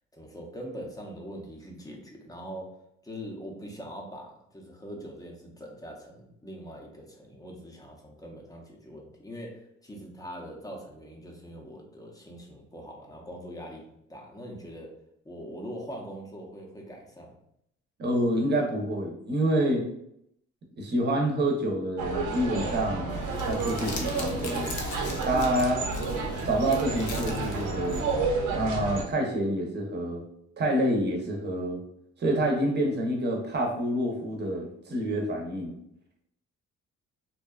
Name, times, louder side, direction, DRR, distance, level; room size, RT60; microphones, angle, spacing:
voice 1, 0.1-2.7 3.0-13.8 14.1-14.9 15.2-17.4, equal, 10° left, 0 dB, 0.6 m, -42 dB
voice 2, 18.0-19.8 20.8-23.1 23.5-24.8 25.2-25.8 26.4-28.0 28.5-30.2 30.6-31.8 32.2-35.8, right 1 dB, 35° right, 0 dB, 0.7 m, -27 dB
sound 1, 22.0-29.1, right 3 dB, 75° right, 0.7 m, -30 dB
Crumpling crinkling, 23.1-28.2, left 4 dB, 75° left, 0.6 m, -42 dB
2.6 x 2.3 x 2.3 m, 0.74 s
cardioid pair, 90°, 30 cm